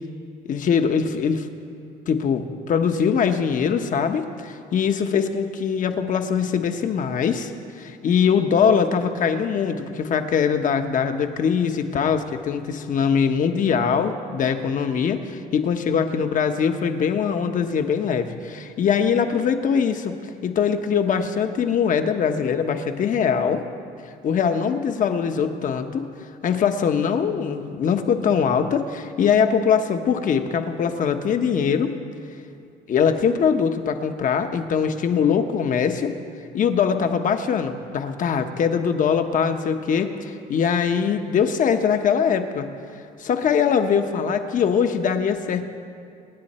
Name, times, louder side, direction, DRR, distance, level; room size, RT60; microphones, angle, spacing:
voice 1, 0.4-1.5 2.1-7.5 7.8-20.2 20.4-23.6 24.2-26.1 26.4-32.0 32.9-36.1 36.5-42.7 43.2-45.6, left 7 dB, 50° left, 7 dB, 1.1 m, -22 dB
25.5 x 9.7 x 4.4 m, 2.4 s
cardioid pair, 110°, 17 cm